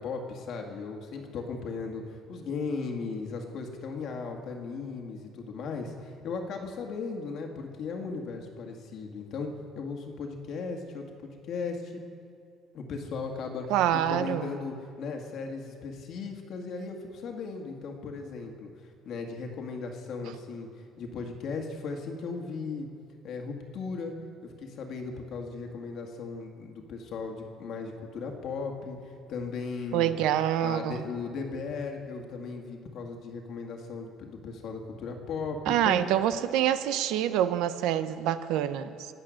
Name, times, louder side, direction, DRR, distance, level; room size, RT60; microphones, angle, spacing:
voice 1, 0.0-9.5 9.8-12.0 12.7-13.7 13.9-18.7 19.1-20.7 21.0-22.9 23.2-24.1 24.4-30.1 30.6-36.0, left 4 dB, 45° left, 3 dB, 1.8 m, -37 dB
voice 2, 13.7-14.5 29.9-31.0 35.7-39.1, right 11 dB, 70° right, 11 dB, 0.7 m, -26 dB
25.5 x 8.9 x 6.4 m, 2.4 s
cardioid pair, 170°, 0 cm